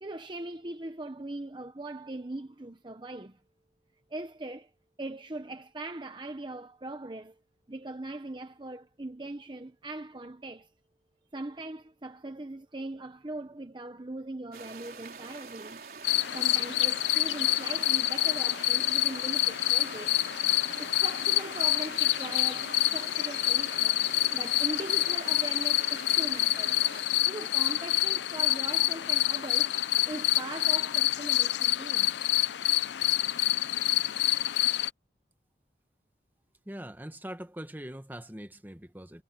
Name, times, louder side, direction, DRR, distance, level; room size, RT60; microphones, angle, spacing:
voice 1, 0.0-3.4 4.1-4.7 5.0-7.4 7.7-10.7 11.3-15.8 16.3-20.1 20.6-24.1 24.3-26.8 27.3-29.7 30.1-32.1, right 2 dB, 25° right, 0.9 m, -40 dB
sound 1, 14.5-27.0, right 5 dB, 55° right, 4.3 m, -45 dB
sound 2, 16.0-34.9, left 15 dB, 75° left, 0.5 m, -27 dB
voice 2, 36.6-39.2, right 1 dB, 10° right, 1.3 m, -42 dB
head